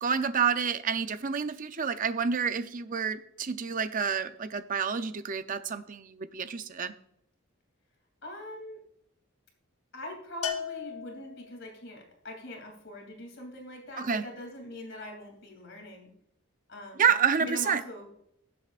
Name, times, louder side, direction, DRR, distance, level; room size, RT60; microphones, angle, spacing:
voice 1, 0.0-6.9 14.0-14.2 17.0-17.8, right 6 dB, 40° right, 11 dB, 0.5 m, -29 dB
voice 2, 8.2-8.8 9.9-16.1 16.7-17.1 17.4-18.1, left 1 dB, 60° left, 2 dB, 2.8 m, -42 dB
Bell, 10.4-11.8, left 7 dB, 80° left, 1.2 m, -36 dB
19.5 x 7.8 x 2.5 m, 0.75 s
head